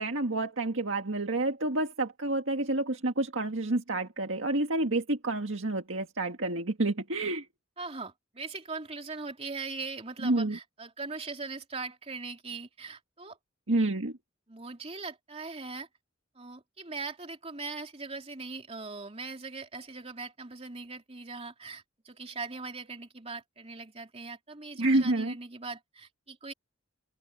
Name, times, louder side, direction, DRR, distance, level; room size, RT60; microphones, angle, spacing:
voice 1, 0.0-7.5 10.2-10.6 13.7-14.2 24.8-25.3, right 2 dB, 75° right, 1.8 m, -29 dB
voice 2, 7.8-13.4 14.5-15.9 16.3-26.5, right 4 dB, 30° right, 3.3 m, -40 dB
head